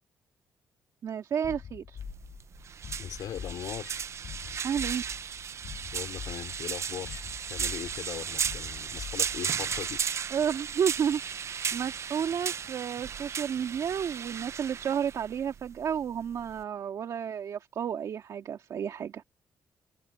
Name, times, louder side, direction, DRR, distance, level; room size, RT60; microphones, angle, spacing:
voice 1, 1.0-2.0 4.6-5.0 10.3-19.2, right 8 dB, 65° right, 2.0 m, -31 dB
sound 1, 1.4-9.7, left 8 dB, 65° left, 1.5 m, -44 dB
sound 2, 2.0-16.6, right 7 dB, 45° right, 0.5 m, -35 dB
voice 2, 3.0-4.0 5.9-7.2 7.5-10.0, left 11 dB, 85° left, 4.5 m, -39 dB
cardioid pair, 115°, 6 cm